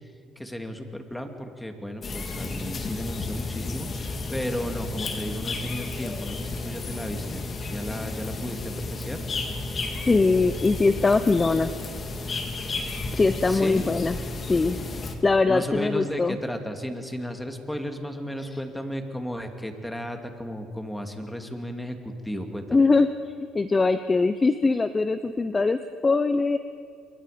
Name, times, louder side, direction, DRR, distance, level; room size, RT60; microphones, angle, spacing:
voice 1, 0.4-9.2 13.5-13.8 15.5-22.9, equal, 5° left, 5 dB, 2.6 m, -34 dB
sound 1, 2.0-15.2, left 3 dB, 40° left, 2.8 m, -33 dB
voice 2, 10.1-11.7 13.1-14.2 14.5-14.8 15.2-16.4 22.7-26.6, left 3 dB, 25° left, 11 dB, 0.8 m, -22 dB
28.0 x 22.5 x 5.2 m, 2.3 s
cardioid pair, 95°, 0 cm